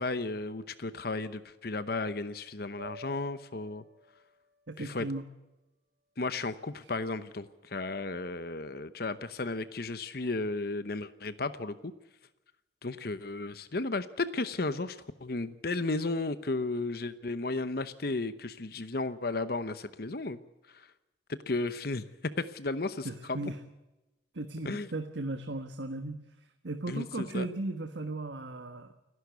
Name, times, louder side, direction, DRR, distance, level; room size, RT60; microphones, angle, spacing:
voice 1, 0.0-3.8 4.8-5.1 6.2-11.9 12.8-20.4 20.7-20.9 21.3-22.0 22.4-23.4 24.6-24.9 26.9-27.5, left 3 dB, 55° left, 13 dB, 0.9 m, -34 dB
sound 1, 2.8-7.0, right 1 dB, 45° right, 2.5 m, -54 dB
voice 2, 4.7-5.3 6.8-6.9 23.0-23.6 24.3-28.9, right 2 dB, 75° right, 7 dB, 1.4 m, -37 dB
30.0 x 11.5 x 8.2 m, 1.0 s
head